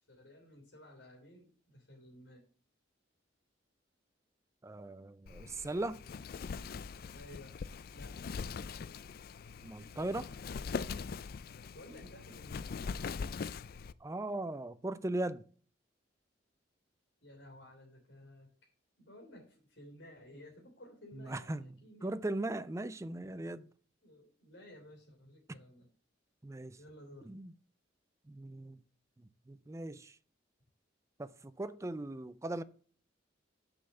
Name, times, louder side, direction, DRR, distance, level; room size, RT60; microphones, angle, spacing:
voice 1, 0.1-2.5 7.1-7.6 7.9-8.2 11.7-12.7 17.2-18.7 19.0-22.2 24.0-25.9 26.8-27.3, left 1 dB, 75° left, 3.2 m, -55 dB
voice 2, 4.6-6.0 9.6-10.3 14.0-15.5 21.1-21.7 22.0-23.7 25.5-25.6 26.4-26.8 27.2-27.5 28.3-28.8 29.2-30.2 31.2-32.6, right 2 dB, 15° right, 0.4 m, -39 dB
Wind, 5.3-13.9, left 5 dB, 50° left, 0.4 m, -42 dB
7.0 x 5.4 x 6.9 m
head